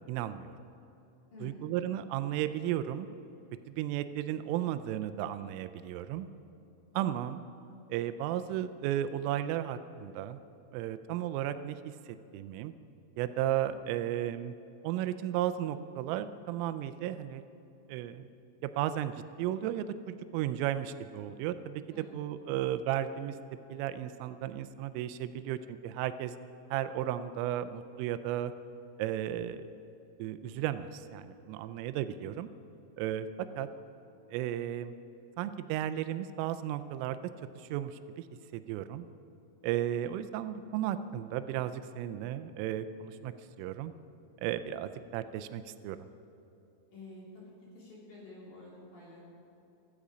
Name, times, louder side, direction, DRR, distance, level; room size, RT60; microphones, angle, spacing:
voice 1, 0.1-0.6 1.4-3.1 3.7-6.3 6.9-7.4 7.9-10.4 10.7-12.7 13.2-14.5 14.8-17.4 17.9-18.3 18.6-23.4 23.7-26.3 26.7-28.5 29.0-29.7 30.2-32.5 33.0-33.7 34.3-34.9 35.4-37.2 37.6-38.2 38.5-39.1 39.6-43.9 44.4-46.1, right 11 dB, 85° right, 12 dB, 3.1 m, -34 dB
voice 2, 1.3-1.8 21.9-22.3 46.9-49.2, left 2 dB, 45° left, -6 dB, 4.4 m, -50 dB
15.5 x 13.0 x 5.0 m, 3.0 s
omnidirectional pair, 5.7 m